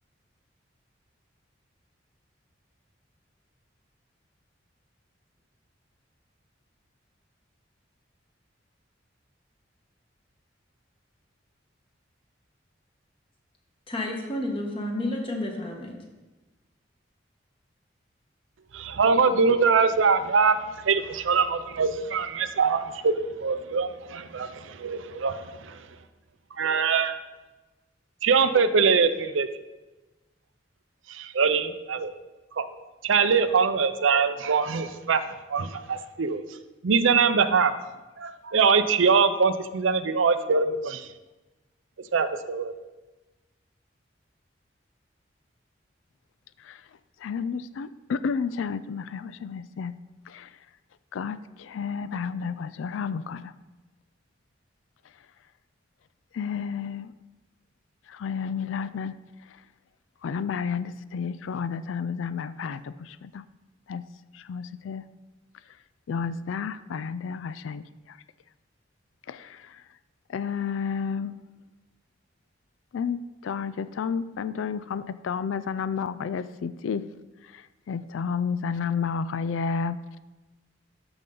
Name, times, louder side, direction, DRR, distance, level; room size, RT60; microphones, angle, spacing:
voice 1, 13.9-16.0, left 1 dB, 30° left, 1 dB, 1.4 m, -30 dB
voice 2, 18.7-20.6 20.8-25.8 26.6-27.2 28.2-29.5 31.1-32.1 32.6-32.7 33.0-35.2 35.5-36.4 36.8-37.7 38.2-41.1 42.1-42.7, right 5 dB, 90° right, 11 dB, 0.6 m, -23 dB
voice 3, 47.2-50.0 50.3-50.6 51.1-53.5 56.3-57.1 58.1-59.1 59.5-59.6 60.2-63.4 63.9-64.0 64.3-65.0 66.1-68.2 69.3-69.8 70.3-71.4 72.9-77.0 77.4-80.0, left 6 dB, 90° left, 15 dB, 0.3 m, -31 dB
13.0 x 5.3 x 3.9 m, 1.1 s
head